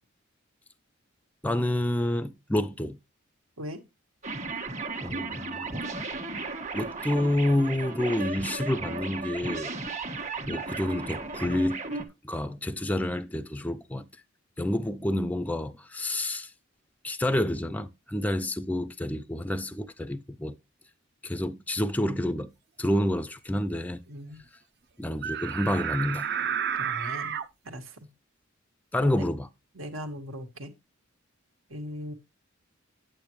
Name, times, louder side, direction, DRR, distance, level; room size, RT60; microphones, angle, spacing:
voice 1, 1.4-3.0 5.0-5.7 6.7-9.7 10.4-11.8 12.2-14.1 14.6-16.5 17.0-20.5 21.2-22.5 22.8-24.0 25.0-26.3 28.9-29.5, left 1 dB, 10° left, 0.4 m, -28 dB
sound 1, 4.2-12.0, right 3 dB, 35° right, 1.5 m, -35 dB
voice 2, 24.1-24.4 26.7-27.4 27.6-28.1 29.0-29.3 29.7-30.7 31.7-32.1, equal, 85° right, 1.8 m, -39 dB
sound 2, 25.2-27.4, right 8 dB, 55° right, 0.7 m, -31 dB
8.9 x 8.8 x 3.2 m
head